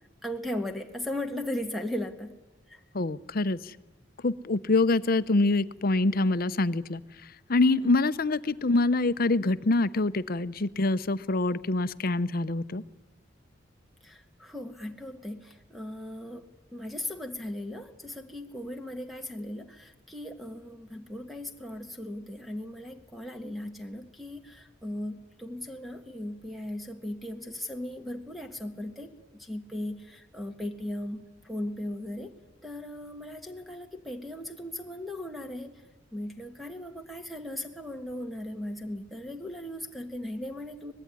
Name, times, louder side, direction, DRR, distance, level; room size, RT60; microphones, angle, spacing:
voice 1, 0.2-2.4 2.7-2.8 14.0-32.3 32.6-35.8 36.1-40.9, left 1 dB, ahead, 1 dB, 1.6 m, -37 dB
voice 2, 2.9-3.7 4.2-7.0 7.5-12.8, left 2 dB, 50° left, 15 dB, 0.8 m, -25 dB
24.0 x 20.0 x 9.8 m, 1.2 s
head